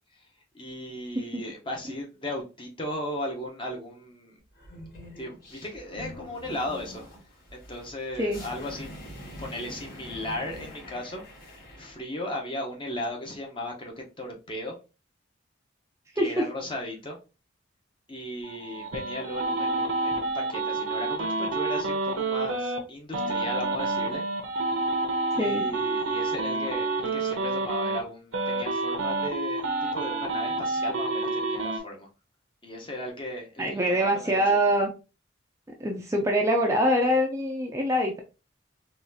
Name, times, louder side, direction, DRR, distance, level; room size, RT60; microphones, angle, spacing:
voice 1, 0.5-4.3 5.2-7.1 7.5-8.9 9.4-11.2 11.5-14.8 16.1-17.2 18.1-24.2 25.3-32.1 32.6-34.6, left 1 dB, 25° left, 0.8 m, -36 dB
sound 1, 4.5-11.9, equal, 45° left, 1.7 m, -44 dB
sound 2, 18.4-22.8 23.1-28.0 28.3-31.8, right 3 dB, 80° right, 0.7 m, -28 dB
voice 2, 33.6-34.9 35.8-38.2, equal, 15° right, 0.4 m, -24 dB
3.9 x 2.4 x 2.6 m
head